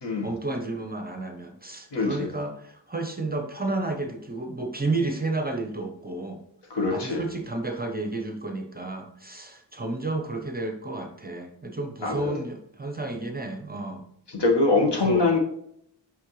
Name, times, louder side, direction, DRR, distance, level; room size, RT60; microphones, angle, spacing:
voice 1, 0.2-6.4 6.9-14.0 14.9-15.3, right 2 dB, 20° right, 4 dB, 0.7 m, -31 dB
voice 2, 1.9-2.3 6.7-7.2 12.0-12.4 14.3-15.4, left 3 dB, 60° left, 2 dB, 1.4 m, -23 dB
6.3 x 5.5 x 3.1 m, 0.70 s
wide cardioid pair, 140°, 46 cm